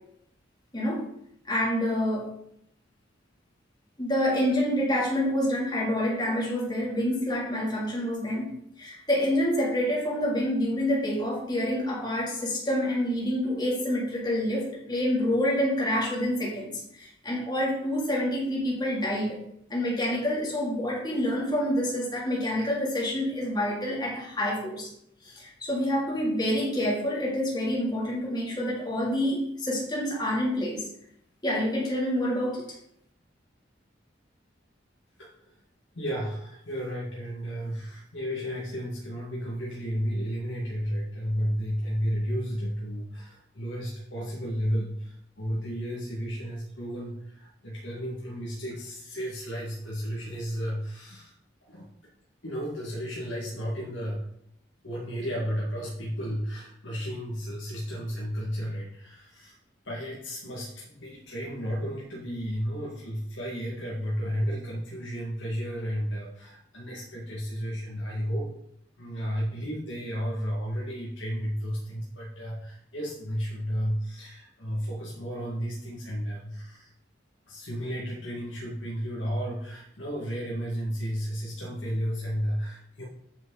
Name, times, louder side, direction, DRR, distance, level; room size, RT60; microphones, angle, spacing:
voice 1, 1.5-2.2 4.0-8.5 8.8-19.4 19.7-24.9 25.2-30.9 31.4-32.6, equal, 25° left, -6 dB, 3.0 m, -27 dB
voice 2, 35.2-35.6 35.9-51.3 51.7-51.9 52.4-54.2 54.8-59.6 59.8-68.5 69.0-76.9 77.5-83.0, equal, 90° left, -5 dB, 2.0 m, -33 dB
8.8 x 6.3 x 4.0 m, 0.73 s
head